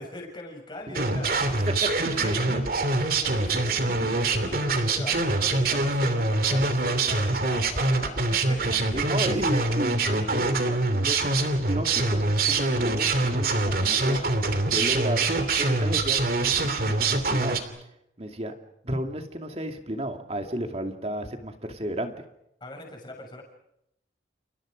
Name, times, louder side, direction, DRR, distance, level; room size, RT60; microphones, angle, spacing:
voice 1, 0.0-1.7 2.1-8.8 22.6-23.4, left 1 dB, 25° left, 1 dB, 6.6 m, -40 dB
sound 1, 0.9-17.6, right 3 dB, 50° right, 3.0 m, -24 dB
voice 2, 1.8-2.3 8.9-15.3 15.6-16.2 16.5-17.6 18.2-18.5 18.8-22.1, right 1 dB, 35° right, 5 dB, 2.5 m, -33 dB
30.0 x 29.5 x 5.2 m, 0.79 s
head